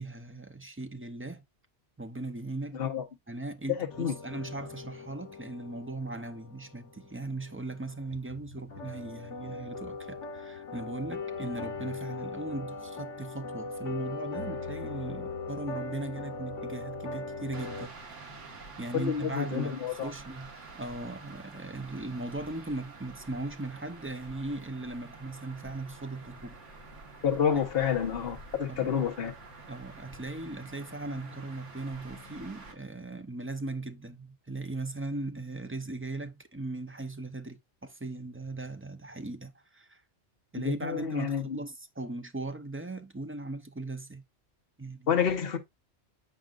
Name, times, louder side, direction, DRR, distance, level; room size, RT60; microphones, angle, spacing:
voice 1, 0.0-1.4 2.0-2.8 3.3-17.9 18.8-26.6 27.5-27.7 28.7-29.0 29.7-40.0 40.5-44.2 44.8-45.1, right 2 dB, 15° right, 0.5 m, -38 dB
voice 2, 2.7-3.0 4.0-4.1 18.9-20.1 27.2-29.3 40.6-41.6 45.1-45.6, left 7 dB, 55° left, 1.2 m, -29 dB
sound 1, 3.9-17.9, left 3 dB, 80° left, 1.5 m, -40 dB
sound 2, 17.5-32.7, right 3 dB, 80° right, 1.9 m, -48 dB
9.0 x 5.0 x 2.5 m
omnidirectional pair, 1.2 m